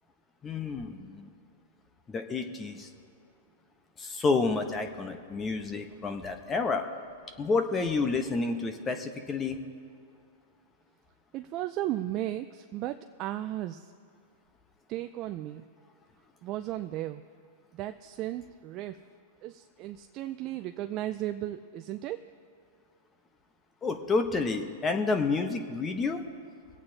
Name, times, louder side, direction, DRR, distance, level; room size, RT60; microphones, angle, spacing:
voice 1, 0.4-1.3 2.1-2.9 4.0-6.8 7.4-9.6 23.8-26.2, left 4 dB, 20° left, 6 dB, 1.0 m, -29 dB
voice 2, 11.3-13.9 14.9-15.6 16.4-17.2 17.7-19.0 19.4-22.2, right 14 dB, 40° right, 8 dB, 0.4 m, -35 dB
25.5 x 8.5 x 2.8 m, 2.3 s
hypercardioid pair, 125°, 0 cm